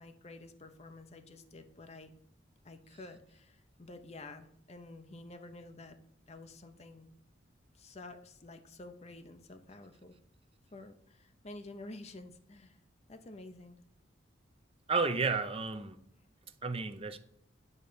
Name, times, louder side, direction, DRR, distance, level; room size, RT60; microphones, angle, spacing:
voice 1, 0.0-2.1 2.6-6.0 6.3-7.1 7.8-10.2 10.7-12.8 13.1-13.8, left 2 dB, 35° left, 0.8 m, -50 dB
voice 2, 14.9-16.0 16.6-17.2, right 4 dB, 30° right, 0.7 m, -32 dB
9.7 x 3.9 x 6.9 m
head